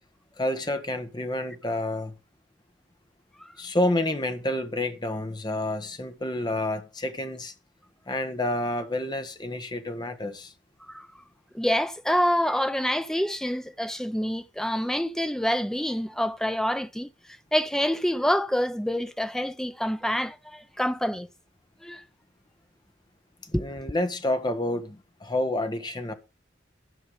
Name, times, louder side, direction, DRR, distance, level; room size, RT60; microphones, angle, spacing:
voice 1, 0.4-2.1 3.6-7.5 8.1-10.5 23.5-26.1, left 1 dB, 25° left, 1.3 m, -29 dB
voice 2, 11.5-17.1 17.5-21.3 21.8-22.0 23.5-23.6, equal, 5° left, 0.4 m, -27 dB
13.0 x 5.7 x 5.1 m
head